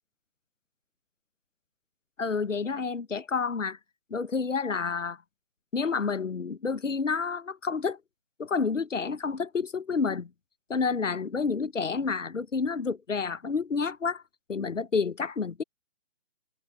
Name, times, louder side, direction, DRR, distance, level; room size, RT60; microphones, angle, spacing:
voice 1, 2.2-3.8 4.1-5.2 5.7-8.0 8.4-10.3 10.7-14.2 14.5-15.6, left 5 dB, 90° left, 0.9 m, -29 dB
figure-of-eight pair, 140°, 37 cm